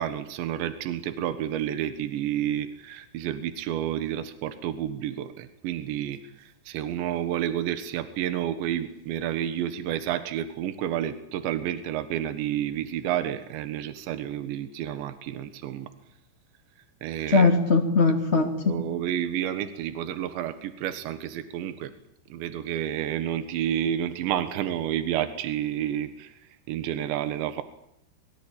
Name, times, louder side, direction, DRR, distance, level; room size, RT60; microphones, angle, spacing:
voice 1, 0.0-15.9 17.0-17.5 18.3-21.9 22.3-26.4 26.7-27.6, right 10 dB, 80° right, 10 dB, 3.8 m, -30 dB
voice 2, 17.3-18.7, left 4 dB, 20° left, 2 dB, 2.1 m, -20 dB
28.0 x 22.5 x 8.8 m, 0.75 s
omnidirectional pair, 5.1 m